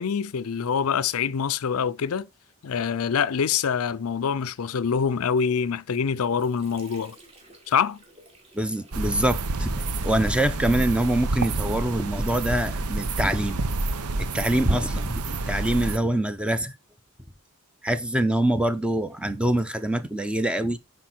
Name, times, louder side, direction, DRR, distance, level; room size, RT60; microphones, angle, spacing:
voice 1, 0.0-2.3 2.6-7.2 7.7-8.0, left 6 dB, 70° left, 0.5 m, -25 dB
Water / Sink (filling or washing), 5.8-13.5, right 1 dB, 25° right, 3.0 m, -54 dB
voice 2, 8.5-13.6 14.2-16.7 17.8-20.8, right 1 dB, 5° right, 0.7 m, -25 dB
sound 1, 8.9-16.0, right 2 dB, 90° right, 0.8 m, -28 dB
10.5 x 5.0 x 4.4 m
head